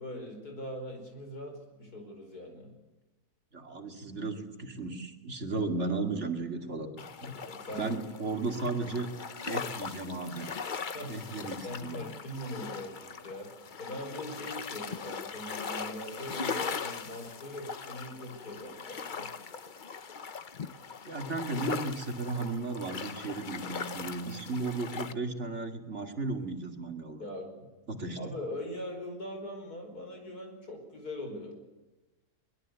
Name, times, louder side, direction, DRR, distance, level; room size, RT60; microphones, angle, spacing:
voice 1, 0.0-2.7 7.3-8.0 10.9-11.3 11.6-13.5 13.8-19.3 27.2-27.7 28.2-31.6, left 1 dB, 85° left, 4 dB, 5.6 m, -41 dB
voice 2, 3.5-6.9 7.2-7.4 7.7-9.1 9.4-10.5 11.1-12.1 21.1-27.2 27.9-28.4, right 3 dB, 50° right, 4 dB, 2.7 m, -35 dB
sound 1, 7.0-25.1, left 5 dB, 40° left, 0.9 m, -40 dB
22.5 x 21.5 x 8.2 m, 1.1 s
omnidirectional pair, 1.6 m